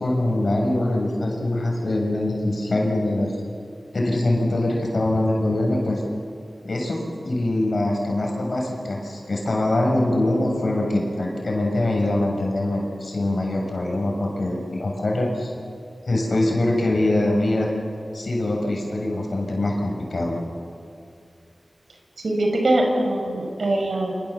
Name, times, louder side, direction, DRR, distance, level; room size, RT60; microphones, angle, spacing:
voice 1, 0.0-3.3 3.9-6.0 6.6-7.0 7.2-15.5 16.0-17.7 18.1-20.4, left 1 dB, 65° left, 0 dB, 6.8 m, -23 dB
voice 2, 22.2-24.1, right 1 dB, 75° right, 2 dB, 5.9 m, -22 dB
28.0 x 27.5 x 7.3 m, 2.5 s
wide cardioid pair, 65°, 0 cm